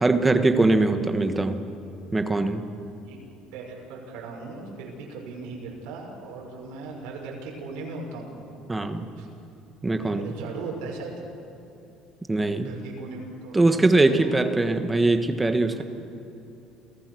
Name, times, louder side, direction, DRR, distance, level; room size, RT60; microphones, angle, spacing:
voice 1, 0.0-1.6 2.1-2.6 8.7-9.0 9.8-10.3 12.3-12.7 13.5-15.8, right 2 dB, 10° right, 8 dB, 1.3 m, -21 dB
voice 2, 3.5-8.4 9.2-9.3 10.0-11.1 12.6-13.6 14.0-14.3 15.8-15.9, right 4 dB, 85° right, -1 dB, 5.9 m, -38 dB
28.5 x 18.0 x 6.4 m, 2.9 s
cardioid pair, 145°, 0 cm